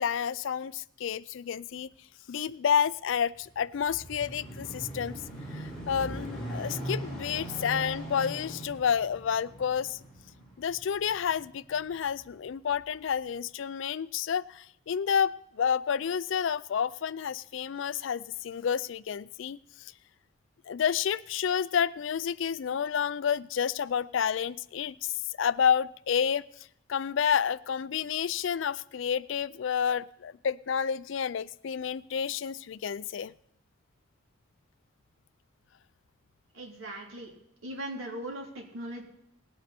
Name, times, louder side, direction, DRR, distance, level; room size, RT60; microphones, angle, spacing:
voice 1, 0.0-1.9 2.3-5.2 5.5-10.0 10.6-19.9 20.7-26.4 26.9-33.3, left 7 dB, 60° left, 19 dB, 0.4 m, -30 dB
sound 1, 3.3-12.1 12.7-12.8, right 1 dB, ahead, 4.3 m, -40 dB
voice 2, 36.5-37.3 37.6-39.0, right 1 dB, 75° right, -1 dB, 3.4 m, -39 dB
19.0 x 8.3 x 4.4 m, 0.74 s
head